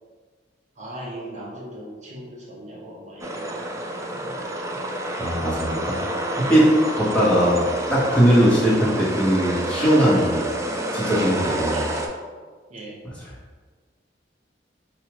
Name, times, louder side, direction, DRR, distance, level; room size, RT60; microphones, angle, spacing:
voice 1, 0.8-4.9 11.7-12.0 12.7-13.0, right 1 dB, 40° right, -4 dB, 0.9 m, -39 dB
sound 1, 3.2-12.1, right 1 dB, 15° right, 0.3 m, -28 dB
voice 2, 5.2-6.0 6.4-7.6 7.9-10.5 10.9-11.8, equal, 5° left, -7 dB, 1.0 m, -19 dB
4.6 x 2.4 x 3.0 m, 1.5 s
head